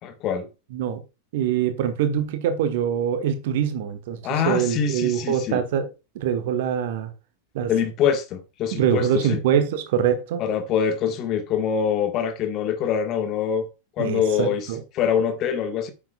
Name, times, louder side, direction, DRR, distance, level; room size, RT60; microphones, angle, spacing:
voice 1, 0.0-0.5 4.2-5.6 7.7-9.4 10.4-13.7 14.0-14.7 14.9-15.9, left 8 dB, 35° left, 1.7 m, -24 dB
voice 2, 1.3-4.2 4.4-5.9 6.1-7.1 7.5-7.7 8.7-10.4 14.0-14.8, right 9 dB, 50° right, 1.3 m, -24 dB
9.1 x 7.5 x 2.4 m
figure-of-eight pair, 90°, 0 cm